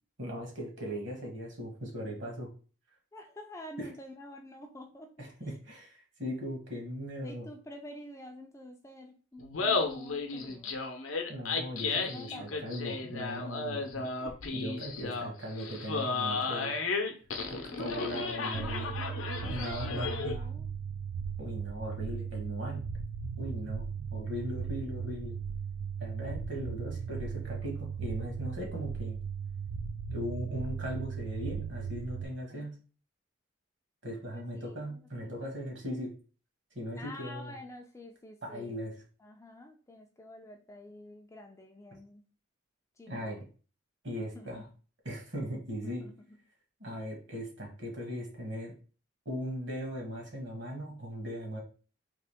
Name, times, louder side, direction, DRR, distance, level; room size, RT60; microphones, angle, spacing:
voice 1, 0.2-2.5 3.8-3.9 5.2-7.5 11.3-14.0 14.5-16.8 17.5-18.9 19.4-20.4 21.4-22.8 23.4-25.4 26.0-29.2 30.1-32.8 34.0-36.1 36.7-37.5 38.4-38.9 43.1-43.5 44.0-44.6 45.0-46.0 46.8-48.7 49.2-51.6, equal, 60° right, 0 dB, 1.4 m, -38 dB
voice 2, 3.1-5.3 7.2-10.7 12.1-12.6 13.4-14.3 17.4-18.2 19.4-20.7 32.5-32.7 34.3-35.5 37.0-38.9 39.2-42.2 43.0-43.4 44.2-44.6 45.8-46.4, left 1 dB, 15° left, 3 dB, 0.3 m, -49 dB
Laughter, 9.4-20.4, left 4 dB, 80° left, 0.6 m, -34 dB
sound 1, 18.5-32.2, right 6 dB, 85° right, 0.4 m, -37 dB
3.7 x 2.9 x 3.4 m, 0.38 s
head